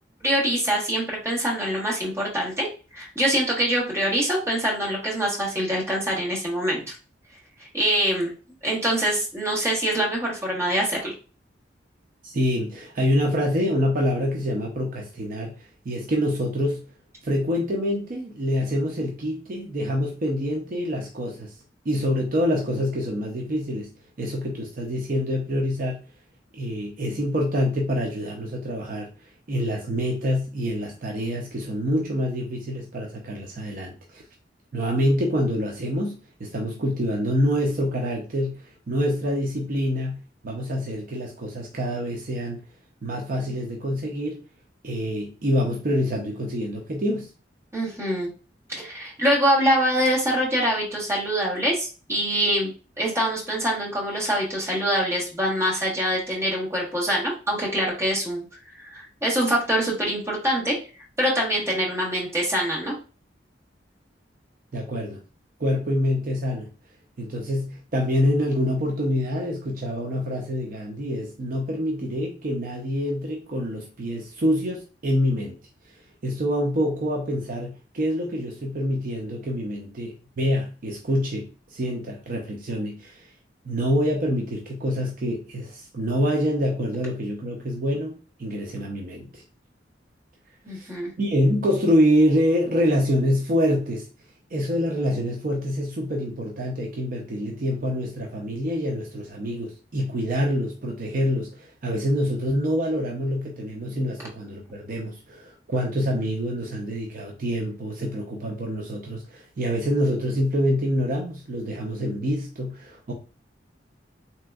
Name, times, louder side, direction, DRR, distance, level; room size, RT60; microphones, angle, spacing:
voice 1, 0.2-2.7 2.9-7.0 7.6-8.3 8.6-11.1 47.7-48.3 48.7-58.4 58.8-60.8 61.2-62.9 90.6-91.1, equal, 15° right, 1.2 m, -24 dB
voice 2, 12.2-16.9 17.2-21.5 21.9-23.9 24.2-26.0 26.5-29.1 29.5-34.2 34.7-42.6 43.0-44.4 44.8-47.3 64.7-65.2 65.6-66.7 67.2-75.6 76.2-83.3 83.6-89.4 90.7-90.9 91.2-94.1 94.5-113.1, equal, 50° right, 0.5 m, -26 dB
3.4 x 2.9 x 2.3 m
head